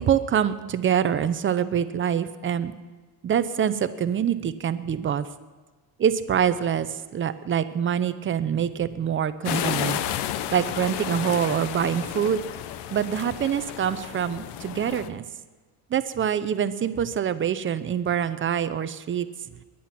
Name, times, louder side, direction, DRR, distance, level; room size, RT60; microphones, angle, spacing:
voice 1, 0.0-2.7 3.2-5.2 6.0-10.0 10.5-12.5 12.9-15.2 15.9-19.3, right 8 dB, 25° right, 13 dB, 0.7 m, -25 dB
sound 1, 9.4-15.1, left 11 dB, 60° left, 1.0 m, -32 dB
22.5 x 10.5 x 6.0 m, 1.3 s
cardioid pair, 140°, 45 cm